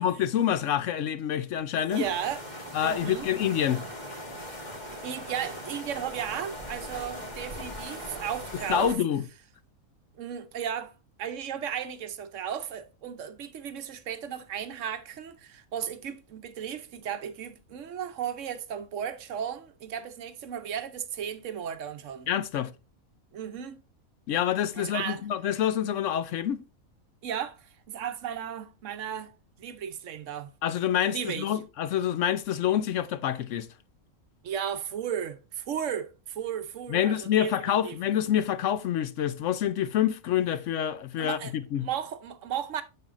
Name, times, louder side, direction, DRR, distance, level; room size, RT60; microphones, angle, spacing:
voice 1, 0.0-2.0 2.7-3.8 8.7-9.2 22.3-22.7 24.3-26.6 30.6-33.7 36.9-41.9, left 10 dB, 70° left, 0.8 m, -27 dB
voice 2, 1.8-2.4 2.8-3.3 5.0-8.9 10.2-10.9 11.2-22.3 23.3-23.8 24.7-25.2 27.2-29.3 29.6-30.5 31.0-31.5 34.4-38.0 41.2-41.5 41.8-42.8, right 9 dB, 65° right, 1.0 m, -35 dB
sound 1, 1.9-8.9, equal, 30° left, 1.8 m, -40 dB
7.9 x 6.9 x 2.5 m
omnidirectional pair, 1.5 m